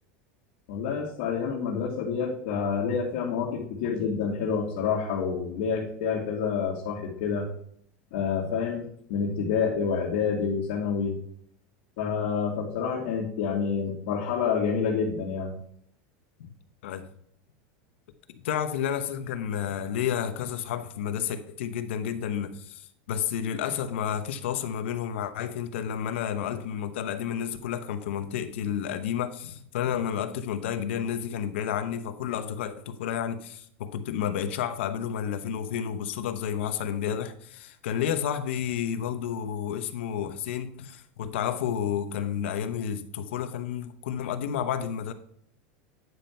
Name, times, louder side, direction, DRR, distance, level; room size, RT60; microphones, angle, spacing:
voice 1, 0.7-7.5 8.1-11.2 12.0-15.5, left 6 dB, 60° left, 1.9 m, -28 dB
voice 2, 18.4-45.1, left 9 dB, 85° left, 1.0 m, -31 dB
9.7 x 5.4 x 4.4 m
supercardioid pair, 160°, 6 cm